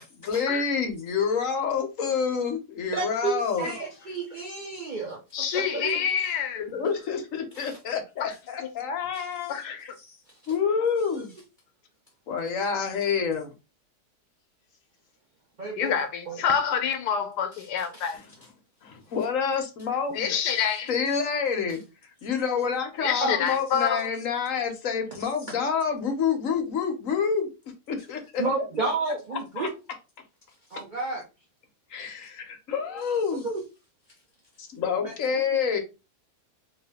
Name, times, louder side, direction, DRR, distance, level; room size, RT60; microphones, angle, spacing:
voice 1, 0.0-3.7 6.6-9.9 10.5-11.3 12.3-13.5 18.8-20.4 20.9-21.8 22.2-27.5 27.9-28.4 28.8-28.9 29.6-29.7 31.9-33.5 34.6-35.8, left 6 dB, 60° left, 1.0 m, -28 dB
voice 2, 2.9-5.2 5.5-6.0 7.6-7.7 10.1-10.2 11.1-11.2 15.6-15.9 16.3-16.4 17.9-18.1 23.2-23.5 25.1-25.2 28.4-29.8 30.7-31.2 33.4-33.6 35.0-35.4, right 3 dB, 70° right, 0.4 m, -31 dB
voice 3, 5.3-6.8 9.5-9.8 15.8-18.2 20.1-20.9 23.0-24.1, left 7 dB, 85° left, 1.2 m, -27 dB
2.9 x 2.6 x 3.4 m
omnidirectional pair, 1.8 m